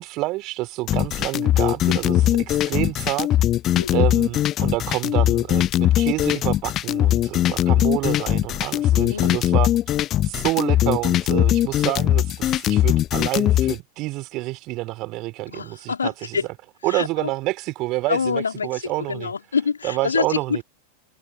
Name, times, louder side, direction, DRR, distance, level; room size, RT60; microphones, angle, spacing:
voice 1, 0.0-3.3 3.9-9.7 10.2-16.4 16.8-19.3 19.8-20.6, right 20 dB, 40° right, 3.6 m, -28 dB
sound 1, 0.9-13.8, left 13 dB, 30° left, 0.5 m, -20 dB
voice 2, 3.7-4.1 9.0-9.4 15.5-16.4 16.9-17.3 18.1-18.8 19.1-20.6, left 5 dB, 75° left, 3.6 m, -26 dB
figure-of-eight pair, 90°, 0 cm